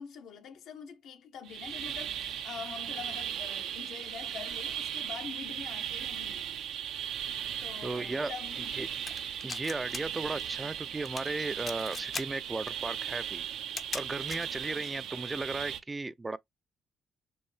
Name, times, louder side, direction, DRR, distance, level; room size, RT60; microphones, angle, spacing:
voice 1, 0.0-6.6 7.6-8.7 14.7-15.1, left 7 dB, 80° left, 0.9 m, -45 dB
sound 1, 1.5-15.8, right 9 dB, 80° right, 0.5 m, -37 dB
voice 2, 7.8-8.3 8.7-8.9 9.4-13.5 13.9-16.4, right 3 dB, 20° right, 0.3 m, -35 dB
sound 2, 9.1-10.0 10.3-10.6 11.0-11.3 11.6-12.2 12.7-12.8 13.6-14.5, left 4 dB, 40° left, 0.5 m, -38 dB
4.5 x 2.6 x 3.2 m
cardioid pair, 90°, 0 cm